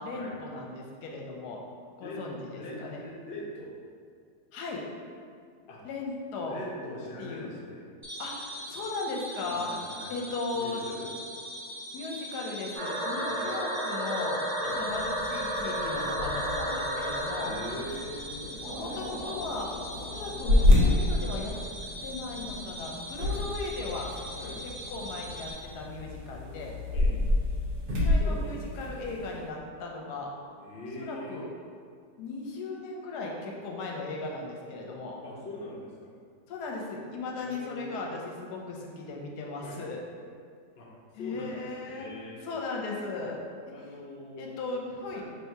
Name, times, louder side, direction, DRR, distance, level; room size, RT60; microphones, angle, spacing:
voice 1, 0.0-1.6 2.0-3.0 4.5-4.8 5.8-6.6 7.2-7.5 8.2-9.7 10.1-10.8 11.9-17.5 18.8-21.6 22.0-24.1 24.6-26.7 28.0-30.3 31.0-31.5 32.2-35.2 36.5-40.0 41.2-42.1 42.4-43.4 43.7-43.8 44.4-45.2, left 3 dB, 75° left, -1 dB, 1.2 m, -37 dB
voice 2, 2.5-3.7 5.7-5.8 6.5-7.9 9.5-11.1 13.3-13.5 14.6-14.8 17.3-19.1 23.2-23.4 24.4-24.6 26.9-27.1 28.2-28.5 30.6-31.4 35.2-36.1 37.4-38.2 39.6-39.8 40.8-40.9 41.1-42.4 43.7-44.6 45.1-45.2, left 1 dB, 50° left, -4 dB, 0.7 m, -42 dB
sound 1, 8.0-25.5, equal, 20° right, 0.7 m, -42 dB
sound 2, 12.7-17.8 18.6-21.1, right 1 dB, ahead, 1.0 m, -33 dB
sound 3, 14.7-29.5, left 2 dB, 75° right, 1.5 m, -30 dB
3.3 x 2.7 x 4.5 m, 2.2 s
omnidirectional pair, 1.8 m